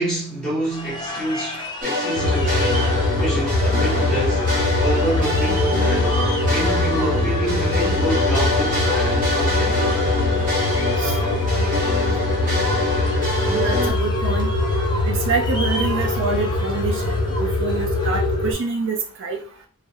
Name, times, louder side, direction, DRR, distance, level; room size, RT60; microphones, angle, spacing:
voice 1, 0.0-4.5 4.8-9.9, right 1 dB, 5° left, 1.0 m, -28 dB
sound 1, 0.6-18.7, equal, 20° left, 0.4 m, -33 dB
sound 2, 1.8-13.9, left 2 dB, 40° right, 0.9 m, -25 dB
sound 3, 2.2-18.5, left 2 dB, 70° left, 0.5 m, -22 dB
voice 2, 13.5-14.5 15.1-19.4, right 4 dB, 55° right, 0.4 m, -26 dB
2.4 x 2.0 x 2.6 m
head